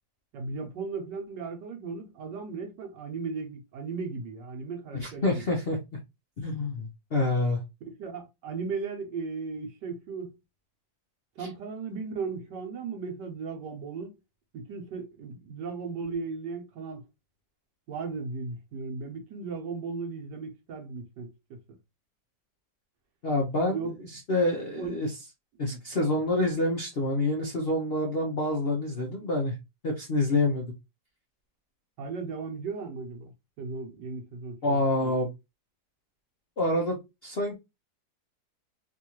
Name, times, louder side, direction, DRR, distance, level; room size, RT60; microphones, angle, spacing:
voice 1, 0.3-5.5 7.9-10.3 11.4-14.1 14.5-17.0 17.9-21.8 23.7-24.0 24.8-25.1 25.7-25.8 32.0-33.3 33.6-35.1, right 4 dB, 70° right, 1.4 m, -36 dB
voice 2, 4.9-5.8 6.4-7.6 11.4-11.5 23.2-25.1 25.6-29.5 29.8-30.6 34.6-35.3 36.6-37.5, left 2 dB, 55° left, 0.6 m, -27 dB
3.6 x 2.6 x 2.9 m
omnidirectional pair, 2.0 m